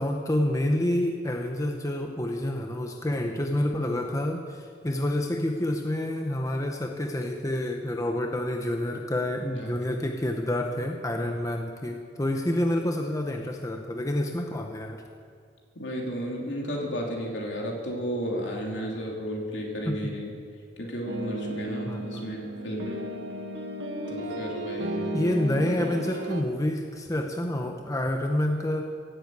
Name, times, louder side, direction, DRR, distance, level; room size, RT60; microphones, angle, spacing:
voice 1, 0.0-15.0 19.9-20.0 21.9-22.3 25.1-28.8, left 1 dB, 15° left, 3 dB, 0.8 m, -28 dB
voice 2, 15.7-20.3 20.8-23.0 24.1-25.2, equal, 70° left, -1 dB, 3.1 m, -33 dB
sound 1, 21.1-26.4, right 1 dB, 65° right, 1.3 m, -34 dB
17.0 x 8.4 x 8.2 m, 2.2 s
head